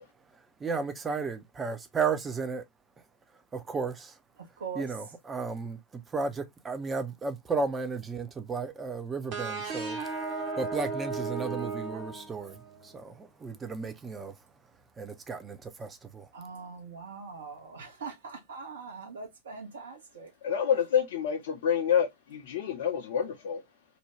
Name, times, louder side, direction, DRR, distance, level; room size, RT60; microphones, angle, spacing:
voice 1, 0.6-2.6 3.5-4.2 4.7-10.1 10.6-14.3 15.0-16.3, right 4 dB, 15° right, 0.5 m, -34 dB
voice 2, 4.4-4.9 16.3-20.3, right 5 dB, 65° right, 0.9 m, -42 dB
sound 1, 9.3-12.8, right 4 dB, 45° right, 1.1 m, -35 dB
voice 3, 20.4-23.6, left 8 dB, 55° left, 0.5 m, -28 dB
2.6 x 2.2 x 3.0 m
figure-of-eight pair, 90°, 0 cm